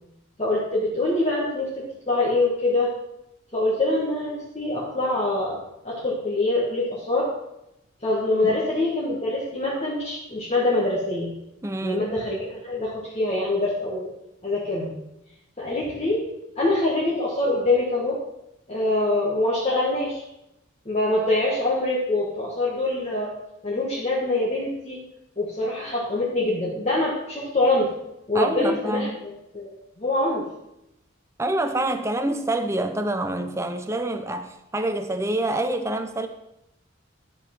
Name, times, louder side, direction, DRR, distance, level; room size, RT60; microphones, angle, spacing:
voice 1, 0.4-2.9 3.5-7.3 8.0-11.3 11.8-14.1 14.4-14.9 15.6-16.2 16.6-18.2 18.7-20.2 20.9-23.3 23.6-25.0 25.4-27.9 28.3-29.1 29.5-30.4, left 2 dB, 30° left, 1.6 m, -24 dB
voice 2, 11.6-12.1 28.3-29.2 31.4-36.3, right 1 dB, 15° right, 0.5 m, -26 dB
11.0 x 5.4 x 5.9 m
head